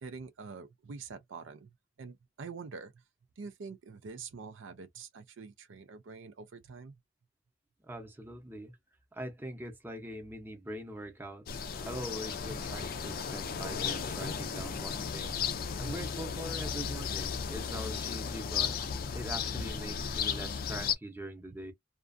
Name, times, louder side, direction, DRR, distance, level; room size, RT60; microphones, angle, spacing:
voice 1, 0.0-2.9 3.4-6.9, right 5 dB, 80° right, 0.5 m, -46 dB
voice 2, 7.8-8.8 9.1-11.5 11.8-15.4 15.8-18.8 19.1-21.7, right 1 dB, 10° right, 0.7 m, -42 dB
sound 1, 11.5-20.9, left 6 dB, 50° left, 0.4 m, -35 dB
2.4 x 2.2 x 2.5 m
head